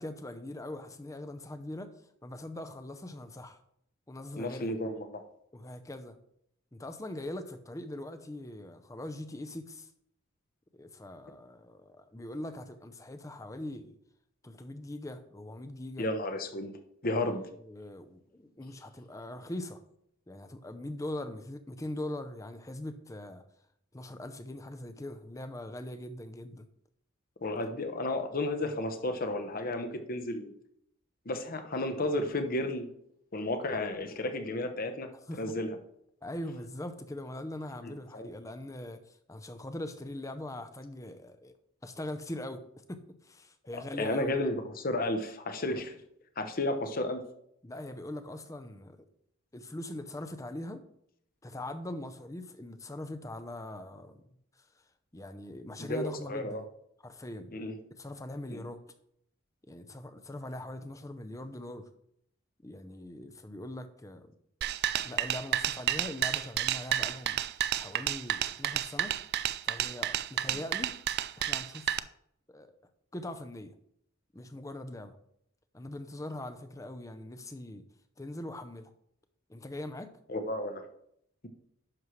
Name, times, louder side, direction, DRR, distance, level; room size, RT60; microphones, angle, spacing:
voice 1, 0.0-1.9 2.2-3.6 4.1-4.7 5.5-6.2 6.7-9.9 10.7-14.0 14.4-16.1 17.5-19.8 20.3-23.4 23.9-26.6 35.3-35.5 36.2-41.5 41.8-44.4 47.6-49.0 49.5-50.8 51.4-54.2 55.1-56.7 57.0-57.6 57.9-58.8 59.7-61.9 62.6-64.3 65.0-67.4 67.8-69.2 69.6-71.0 71.4-72.0 72.5-72.8 73.1-73.7 74.3-75.2 75.7-77.9 78.2-78.9 79.5-80.1, left 1 dB, 15° left, 9 dB, 0.6 m, -41 dB
voice 2, 4.4-5.2 16.0-16.7 17.0-17.4 27.4-30.5 31.3-32.9 33.3-35.8 37.8-38.3 43.7-46.0 46.4-47.2 55.8-56.6 57.5-57.8 58.5-58.6 80.3-80.8, left 1 dB, 45° left, 7 dB, 0.9 m, -33 dB
sound 1, 64.6-72.0, right 11 dB, 50° right, 0.3 m, -31 dB
10.5 x 6.3 x 3.2 m, 0.71 s
head